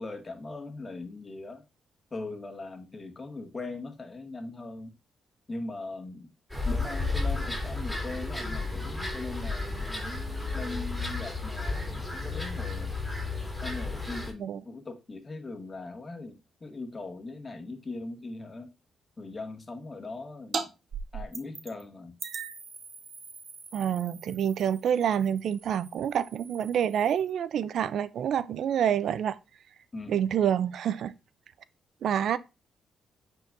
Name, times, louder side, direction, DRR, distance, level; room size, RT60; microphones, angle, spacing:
voice 1, 0.0-1.6 2.1-4.9 5.5-6.3 6.6-12.9 13.6-18.7 19.2-20.7 21.1-22.2 29.9-30.3, left 3 dB, 30° left, 2.0 m, -40 dB
sound 1, 6.5-14.3, left 3 dB, 10° left, 3.7 m, -32 dB
sound 2, 20.5-20.7 20.9-21.8 22.2-27.3, right 5 dB, 55° right, 1.3 m, -40 dB
voice 2, 23.7-29.4 30.1-31.1 32.0-32.4, right 9 dB, 70° right, 0.4 m, -27 dB
9.2 x 4.6 x 2.6 m
supercardioid pair, 60°, 0 cm